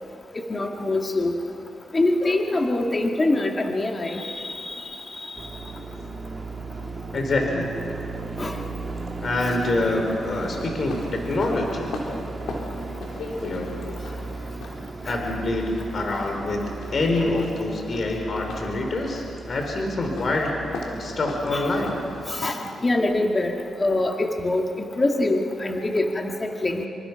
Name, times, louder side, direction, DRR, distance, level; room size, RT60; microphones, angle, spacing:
voice 1, 0.5-1.3 1.9-5.4 8.4-8.6 15.1-15.2 17.3-17.4 21.5-21.7 22.3-23.5 23.8-24.6 25.0-26.3 26.6-26.9, left 2 dB, 30° left, 2 dB, 2.1 m, -24 dB
sound 1, 5.3-22.3, right 3 dB, 40° right, 1.9 m, -36 dB
voice 2, 7.1-7.7 9.2-11.9 13.4-13.7 15.0-20.6 21.0-21.9, left 2 dB, 50° left, 2 dB, 4.0 m, -26 dB
sound 2, 8.9-22.9, left 2 dB, 80° left, 4.2 m, -39 dB
27.5 x 26.0 x 5.9 m, 2.8 s
cardioid pair, 80°, 0 cm